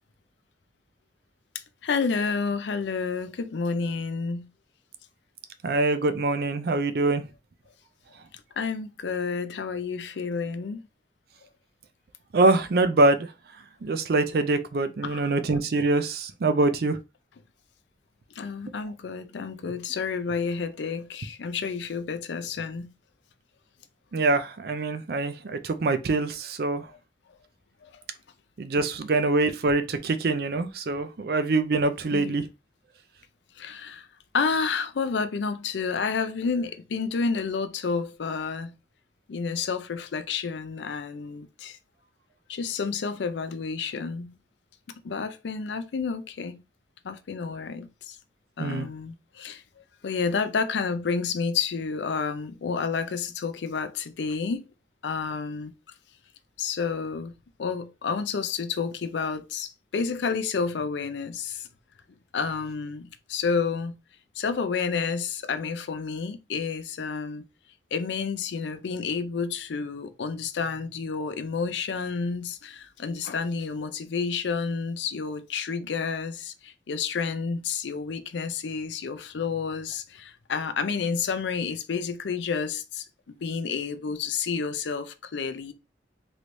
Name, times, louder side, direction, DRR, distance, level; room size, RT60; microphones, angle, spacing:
voice 1, 1.8-4.5 8.6-10.8 15.0-15.3 18.3-22.9 27.9-28.0 32.1-32.5 33.6-34.1 34.3-38.7 39.3-41.8 42.5-44.3 45.0-46.6 47.0-48.2 48.6-49.6 50.0-54.6 55.0-55.7 56.6-57.3 57.6-61.7 62.3-63.9 64.4-67.4 67.9-85.7, left 5 dB, 85° left, 0.4 m, -30 dB
voice 2, 5.6-7.2 12.3-13.3 13.8-17.0 24.1-26.8 28.6-32.4 48.6-48.9, right 2 dB, 60° right, 0.4 m, -24 dB
3.1 x 3.1 x 2.6 m
head